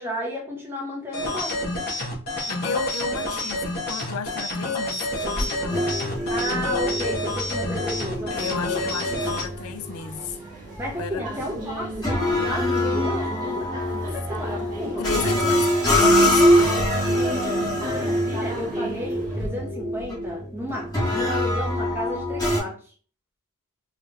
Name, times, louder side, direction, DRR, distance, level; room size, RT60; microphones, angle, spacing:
voice 1, 0.0-1.6 6.3-8.9 10.8-13.8 14.0-15.6 17.9-22.9, left 1 dB, 10° right, 1.1 m, -33 dB
sound 1, 1.1-9.5, left 1 dB, 45° left, 1.4 m, -29 dB
voice 2, 2.5-5.9 8.3-10.4 11.0-11.2 15.0-16.9, left 6 dB, 85° left, 0.5 m, -33 dB
sound 2, 5.2-19.5, right 1 dB, 35° right, 1.8 m, -36 dB
sound 3, 5.7-22.6, equal, 15° left, 1.6 m, -24 dB
3.9 x 3.3 x 2.7 m
head